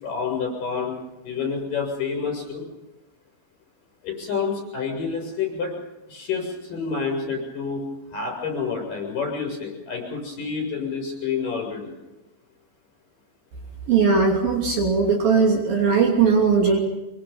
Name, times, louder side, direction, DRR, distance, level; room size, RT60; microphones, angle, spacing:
voice 1, 0.0-1.0 1.3-2.6 4.0-5.7 6.1-7.8 8.1-11.9, left 5 dB, 45° left, 1 dB, 8.8 m, -28 dB
voice 2, 13.9-16.8, right 5 dB, 50° right, 0 dB, 4.1 m, -19 dB
25.0 x 23.5 x 5.6 m, 1.0 s
omnidirectional pair, 5.7 m